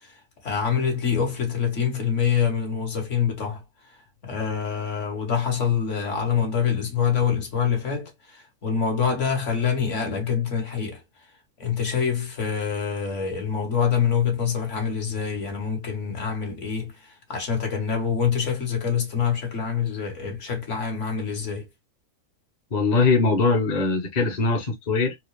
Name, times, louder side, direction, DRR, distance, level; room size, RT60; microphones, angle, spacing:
voice 1, 0.4-3.6 4.2-11.0 11.6-16.9 17.3-21.6, left 7 dB, 65° left, 1.7 m, -25 dB
voice 2, 22.7-25.2, left 4 dB, 40° left, 0.8 m, -21 dB
4.2 x 2.4 x 3.1 m
omnidirectional pair, 1.4 m